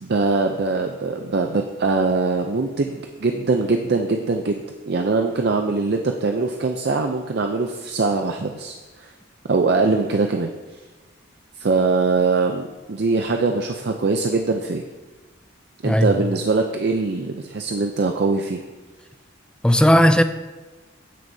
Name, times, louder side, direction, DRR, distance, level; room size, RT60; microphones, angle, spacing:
voice 1, 0.0-9.1 9.5-10.5 11.6-14.8 15.8-18.6, right 3 dB, 55° right, 0.5 m, -22 dB
voice 2, 15.8-16.2 19.6-20.2, equal, 5° left, 0.3 m, -15 dB
15.5 x 6.3 x 2.7 m
head